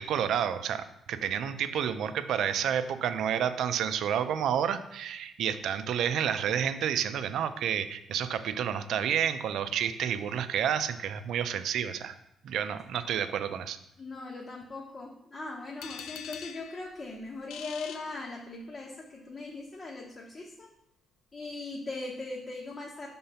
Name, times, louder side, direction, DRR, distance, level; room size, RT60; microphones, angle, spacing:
voice 1, 0.0-12.1 12.4-13.8, right 9 dB, 75° right, 11 dB, 0.5 m, -30 dB
voice 2, 14.0-20.7 21.3-23.1, left 3 dB, 35° left, -1 dB, 1.1 m, -40 dB
sound 1, 15.8-18.9, left 8 dB, 85° left, 0.4 m, -45 dB
5.6 x 3.8 x 5.5 m, 0.79 s
cardioid pair, 90°, 0 cm